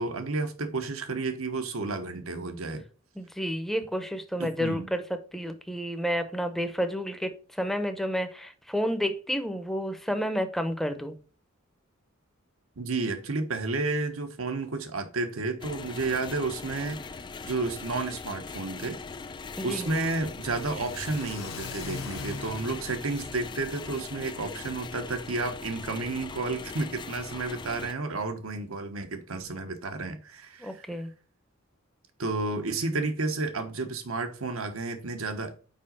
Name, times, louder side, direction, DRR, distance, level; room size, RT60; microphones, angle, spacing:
voice 1, 0.0-2.8 4.4-4.9 12.8-19.0 19.6-31.0 32.2-35.6, right 3 dB, 80° right, 1.1 m, -31 dB
voice 2, 3.2-5.0 5.3-11.2 19.6-19.9 30.6-31.1, equal, ahead, 0.7 m, -30 dB
sound 1, 15.6-27.9, left 4 dB, 20° left, 0.3 m, -41 dB
Car / Accelerating revving vroom, 18.4-24.6, left 4 dB, 70° left, 1.2 m, -44 dB
5.5 x 5.0 x 5.3 m
head